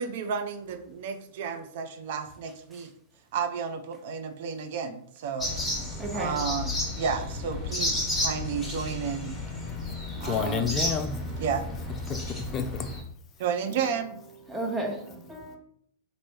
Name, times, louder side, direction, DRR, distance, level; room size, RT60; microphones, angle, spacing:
voice 1, 0.0-2.9 3.3-5.5 6.1-9.4 10.2-10.7 11.4-11.7 13.4-14.2, right 6 dB, 60° right, 0.4 m, -32 dB
sound 1, 5.4-13.0, left 1 dB, 5° left, 1.1 m, -32 dB
voice 2, 6.0-6.4 14.5-15.6, right 2 dB, 10° right, 0.8 m, -33 dB
voice 3, 10.2-11.3 12.1-12.9, left 6 dB, 30° left, 0.3 m, -30 dB
3.0 x 2.6 x 3.0 m
hypercardioid pair, 115°, 0 cm